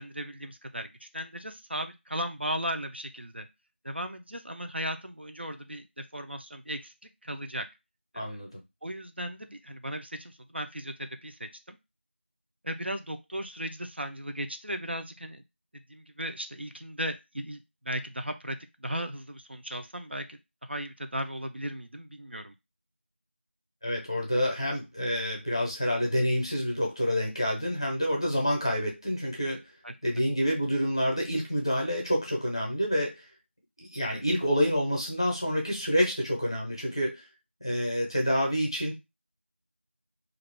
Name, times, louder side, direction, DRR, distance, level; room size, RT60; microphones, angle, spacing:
voice 1, 0.0-3.5 3.8-5.8 6.1-6.9 7.2-7.7 8.8-11.8 12.6-15.4 15.9-22.5 29.8-29.9, equal, 60° right, 7 dB, 0.4 m, -36 dB
voice 2, 8.1-8.6 23.8-29.6 30.0-33.1 33.8-37.2 37.6-38.9, equal, 25° left, -1 dB, 0.6 m, -28 dB
2.4 x 2.3 x 3.3 m, 0.23 s
figure-of-eight pair, 175°, 7 cm